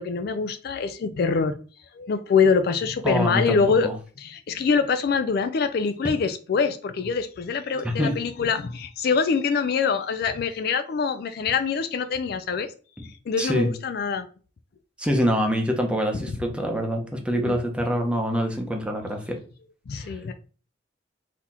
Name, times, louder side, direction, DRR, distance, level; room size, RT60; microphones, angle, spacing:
voice 1, 0.0-1.5 1.9-3.9 4.2-12.7 13.3-14.3 17.4-17.6 19.9-20.3, left 5 dB, 55° left, 0.3 m, -24 dB
voice 2, 3.0-3.9 7.8-8.2 13.0-13.1 13.4-13.7 15.0-19.4 20.0-20.2, equal, 5° right, 0.8 m, -25 dB
4.1 x 2.9 x 4.2 m
head